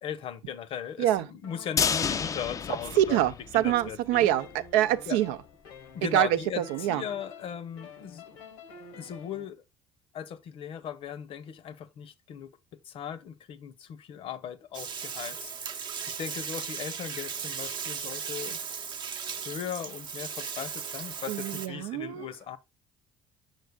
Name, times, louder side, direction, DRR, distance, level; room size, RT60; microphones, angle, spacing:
voice 1, 0.0-4.3 5.1-5.2 5.9-8.3 9.0-9.6 10.1-18.6 19.4-22.6, left 8 dB, 55° left, 0.7 m, -38 dB
sound 1, 1.4-3.3 3.7-9.5, left 3 dB, 85° left, 1.1 m, -49 dB
sound 2, 1.8-3.9 4.2-4.3 4.7-4.8, left 6 dB, 30° left, 0.4 m, -30 dB
voice 2, 3.0-5.4 6.0-7.0 21.3-22.3, right 13 dB, 80° right, 0.5 m, -25 dB
Bathtub (filling or washing), 14.7-21.7, right 6 dB, 45° right, 0.7 m, -37 dB
8.1 x 6.3 x 2.2 m
hypercardioid pair, 65°, 11 cm